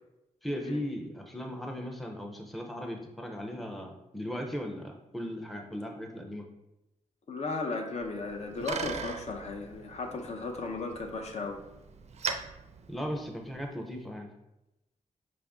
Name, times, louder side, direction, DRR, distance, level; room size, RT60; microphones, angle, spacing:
voice 1, 0.4-6.5 12.9-14.3, equal, ahead, 2 dB, 0.5 m, -37 dB
voice 2, 7.3-11.6, left 3 dB, 55° left, 3 dB, 0.5 m, -35 dB
Bicycle, 8.0-13.7, right 5 dB, 55° right, 0.4 m, -40 dB
4.9 x 2.5 x 3.4 m, 0.92 s
wide cardioid pair, 105°, 14 cm